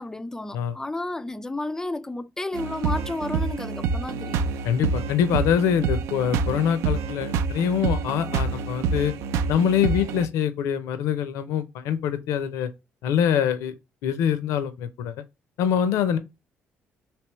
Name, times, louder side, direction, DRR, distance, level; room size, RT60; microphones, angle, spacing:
voice 1, 0.0-4.4, left 2 dB, 10° left, 0.3 m, -32 dB
sound 1, 2.5-10.3, right 5 dB, 85° right, 0.3 m, -27 dB
voice 2, 4.6-9.1 9.5-12.7 13.0-13.8 14.0-15.2 15.6-16.2, left 8 dB, 85° left, 0.5 m, -24 dB
3.3 x 2.8 x 3.0 m
cardioid pair, 85°, 5 cm